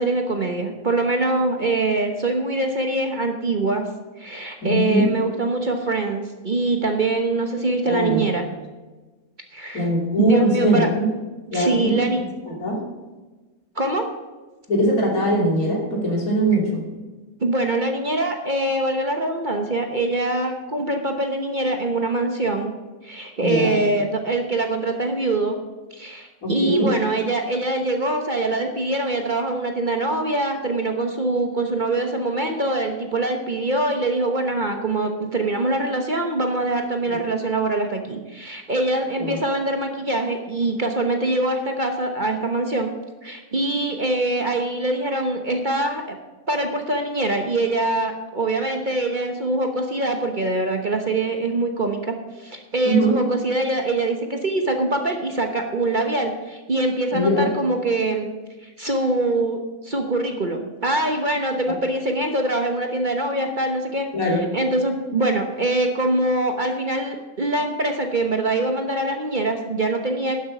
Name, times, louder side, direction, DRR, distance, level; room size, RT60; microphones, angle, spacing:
voice 1, 0.0-3.8 4.2-8.4 9.5-9.9 10.2-10.9 11.5-12.2 13.8-14.1 17.4-22.7 23.0-25.6 25.9-42.9 43.2-46.2 46.5-58.3 58.6-64.1 64.5-70.4, right 2 dB, 35° right, 4 dB, 1.1 m, -23 dB
voice 2, 4.6-5.1 7.8-8.3 9.7-11.1 11.5-12.2 12.6-12.8 14.7-16.8 23.4-23.8 26.4-26.9 37.1-37.2 39.2-39.4 52.8-53.2 57.1-57.5 64.1-64.4, equal, 70° left, -2 dB, 3.4 m, -21 dB
12.0 x 7.4 x 6.0 m, 1.2 s
omnidirectional pair, 1.5 m